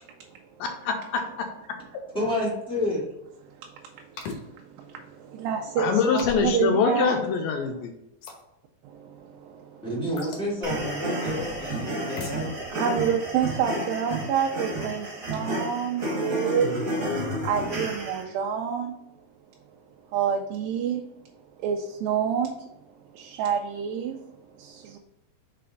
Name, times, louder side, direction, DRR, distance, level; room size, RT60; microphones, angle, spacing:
voice 1, 0.8-1.5 5.8-7.9, left 5 dB, 85° left, 3 dB, 2.4 m, -24 dB
voice 2, 2.1-3.0 9.8-12.5 12.8-12.9, left 1 dB, 5° left, -8 dB, 0.7 m, -29 dB
voice 3, 3.5-7.2 7.8-7.9 8.8-9.9 12.7-16.8 17.4-19.0 20.1-21.1 21.6-22.7 23.1-25.0, right 8 dB, 80° right, 3 dB, 2.2 m, -28 dB
sound 1, 4.2-4.4 6.2-6.6 8.2-8.4 10.2-10.5 12.2-12.4, left 4 dB, 70° left, 2.3 m, -36 dB
sound 2, 10.6-18.2, right 1 dB, 30° right, 1.4 m, -31 dB
5.7 x 4.2 x 3.8 m, 0.87 s
omnidirectional pair, 4.2 m